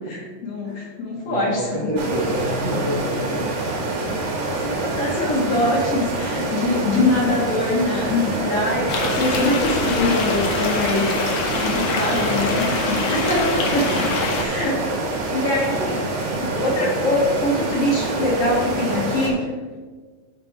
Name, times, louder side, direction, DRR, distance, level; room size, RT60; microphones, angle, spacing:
voice 1, 0.1-1.7 4.5-11.1 11.5-14.9 15.3-16.1 16.4-19.5, left 2 dB, 55° left, -4 dB, 1.9 m, -23 dB
voice 2, 1.1-4.2 12.1-12.6 13.8-13.9, equal, 60° right, -6 dB, 1.3 m, -29 dB
sound 1, 2.0-19.3, right 2 dB, 90° right, 3.4 m, -26 dB
sound 2, 8.9-14.4, left 3 dB, 80° left, 1.2 m, -25 dB
11.5 x 4.0 x 4.5 m, 1.4 s
omnidirectional pair, 3.9 m